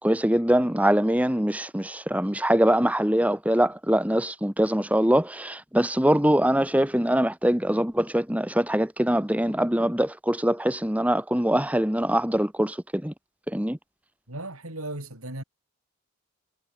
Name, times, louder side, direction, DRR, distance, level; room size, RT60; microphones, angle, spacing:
voice 1, 0.0-13.1 13.5-13.8, right 1 dB, 5° right, 2.0 m, -23 dB
voice 2, 14.3-15.4, right 1 dB, 80° right, 7.8 m, -36 dB
head